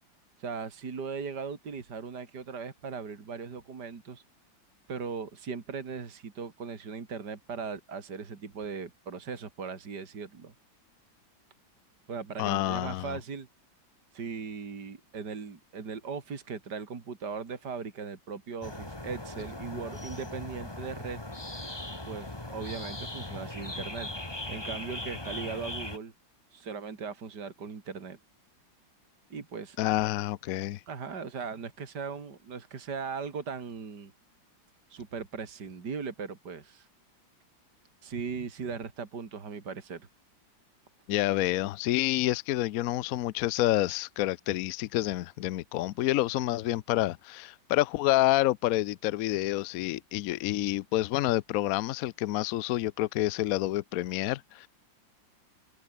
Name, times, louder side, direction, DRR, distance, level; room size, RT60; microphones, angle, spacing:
voice 1, 0.4-4.2 4.9-10.5 12.1-13.5 14.1-21.2 22.1-24.1 24.5-26.1 26.5-28.2 29.3-29.8 30.9-34.1 34.9-36.9 38.0-40.1, right 5 dB, 60° right, 3.1 m, -38 dB
voice 2, 12.4-13.2 29.8-30.8 41.1-54.7, left 15 dB, 70° left, 0.8 m, -28 dB
sound 1, 18.6-26.0, left 1 dB, 15° left, 2.3 m, -39 dB
omnidirectional pair, 2.0 m